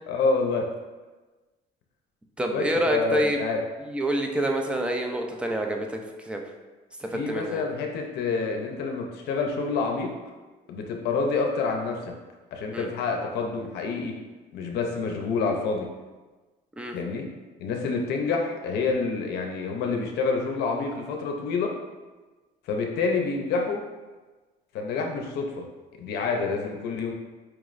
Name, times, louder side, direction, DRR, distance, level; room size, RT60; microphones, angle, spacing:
voice 1, 0.1-0.6 2.5-3.6 7.1-10.1 10.7-12.1 12.5-14.1 14.5-15.9 16.9-17.3 17.6-21.7 22.7-23.8 24.7-25.6 26.0-27.1, left 4 dB, 75° left, 2 dB, 0.6 m, -27 dB
voice 2, 2.4-3.4 3.8-6.4 7.0-7.6 12.7-12.9 16.8-16.9, right 1 dB, 5° right, 2 dB, 0.4 m, -27 dB
4.7 x 3.0 x 2.5 m, 1.2 s
cardioid pair, 110°, 17 cm